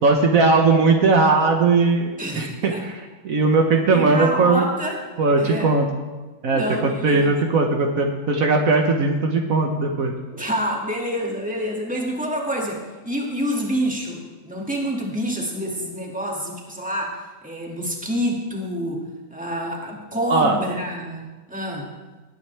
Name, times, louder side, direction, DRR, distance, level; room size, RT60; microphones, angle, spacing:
voice 1, 0.0-4.6 5.2-5.9 6.4-10.1 20.3-20.6, right 3 dB, 65° right, 2 dB, 1.4 m, -19 dB
voice 2, 2.2-2.8 3.9-5.0 5.4-5.8 6.5-7.4 10.3-19.0 19.3-21.2 21.5-21.9, equal, 5° right, -2 dB, 2.1 m, -27 dB
19.5 x 9.3 x 3.4 m, 1.3 s
omnidirectional pair, 1.6 m